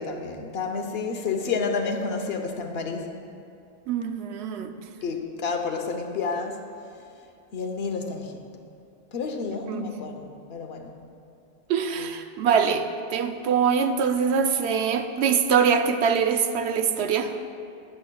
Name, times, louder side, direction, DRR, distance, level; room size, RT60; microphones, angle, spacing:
voice 1, 0.0-3.1 5.0-6.6 7.5-8.3 9.1-10.9 12.0-12.1, left 4 dB, 75° left, 4 dB, 1.0 m, -30 dB
voice 2, 3.9-4.7 9.7-9.9 11.7-17.3, right 6 dB, 85° right, 7 dB, 0.9 m, -23 dB
11.5 x 9.8 x 2.2 m, 2.5 s
omnidirectional pair, 1.1 m